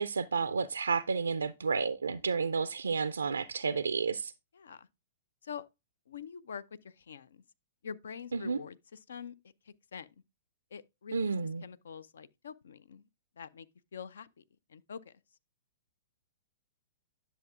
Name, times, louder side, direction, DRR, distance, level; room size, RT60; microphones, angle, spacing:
voice 1, 0.0-4.3 8.3-8.6 11.1-11.6, right 5 dB, 80° right, 0.3 m, -31 dB
voice 2, 4.5-4.9 5.4-5.7 6.1-7.4 7.8-9.3 9.7-10.1 10.7-13.1 13.4-14.4 14.7-15.1, left 7 dB, 65° left, 0.5 m, -45 dB
10.5 x 6.8 x 2.4 m
figure-of-eight pair, 110°, 0 cm